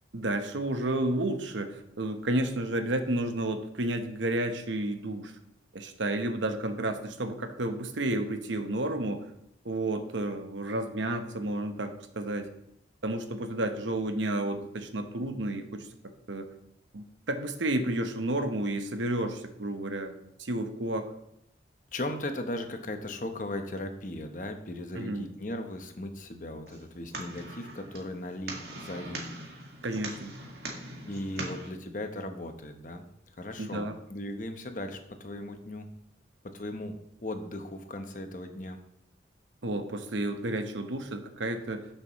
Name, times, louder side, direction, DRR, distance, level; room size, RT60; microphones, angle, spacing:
voice 1, 0.1-5.3 5.7-9.3 9.6-12.5 13.0-15.9 16.3-16.5 16.9-21.1 24.9-25.3 29.8-30.4 33.6-33.9 39.6-41.9, right 1 dB, 90° right, 7 dB, 1.0 m, -31 dB
voice 2, 21.9-29.3 31.1-33.1 33.3-35.9 36.4-38.8, left 1 dB, 45° left, 6 dB, 0.9 m, -37 dB
sound 1, 26.7-31.7, right 2 dB, 65° right, 1.8 m, -41 dB
12.5 x 6.7 x 3.1 m, 0.77 s
head